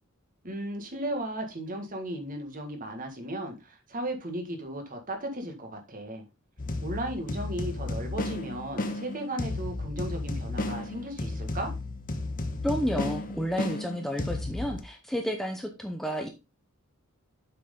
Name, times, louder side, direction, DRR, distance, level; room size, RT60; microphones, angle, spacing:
voice 1, 0.4-6.2 6.8-11.7, right 1 dB, 40° right, 4 dB, 1.8 m, -35 dB
sound 1, 6.6-14.8, left 2 dB, 40° left, 1.1 m, -33 dB
voice 2, 12.6-16.3, equal, ahead, 3 dB, 0.7 m, -31 dB
7.6 x 6.2 x 3.8 m, 0.28 s
head